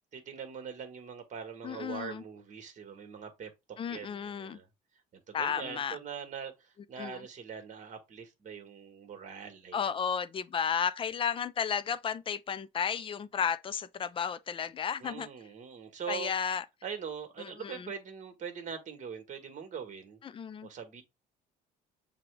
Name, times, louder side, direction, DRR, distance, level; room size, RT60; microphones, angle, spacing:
voice 1, 0.0-4.7 5.1-9.9 15.0-16.3 16.8-20.2 20.6-21.0, right 7 dB, 45° right, 1.5 m, -42 dB
voice 2, 1.6-2.2 3.8-4.6 5.3-6.0 7.0-7.2 9.7-15.3 16.1-16.6 17.4-17.9 20.2-20.7, left 7 dB, 30° left, 0.5 m, -33 dB
6.8 x 2.3 x 3.4 m
cardioid pair, 110°, 17 cm